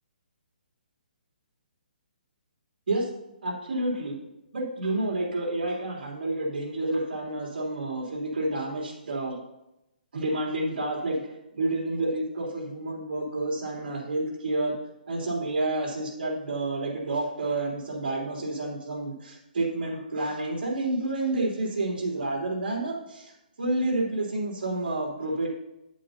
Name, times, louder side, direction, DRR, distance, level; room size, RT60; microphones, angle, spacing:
voice 1, 3.4-4.2 4.5-9.4 10.1-14.7 15.1-23.3 23.6-25.5, right 2 dB, 70° right, -1 dB, 3.0 m, -29 dB
9.1 x 8.2 x 2.7 m, 0.90 s
hypercardioid pair, 170°, 5 cm